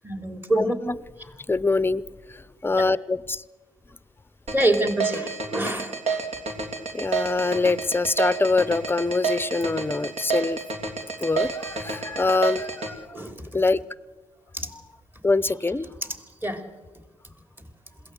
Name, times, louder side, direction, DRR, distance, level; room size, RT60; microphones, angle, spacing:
voice 1, 0.0-0.8 4.5-5.9 13.1-13.3 14.5-14.7 16.4-16.6, right 1 dB, 15° right, 7 dB, 3.2 m, -25 dB
voice 2, 0.6-1.0 1.5-2.0 2.3-3.4 6.9-10.6 11.2-13.2 13.5-13.8 14.7-14.8 15.2-15.9, left 3 dB, 15° left, 18 dB, 0.8 m, -24 dB
sound 1, 4.5-12.9, right 5 dB, 55° right, 3.2 m, -29 dB
21.5 x 17.0 x 7.9 m, 1.2 s
supercardioid pair, 50°, 13 cm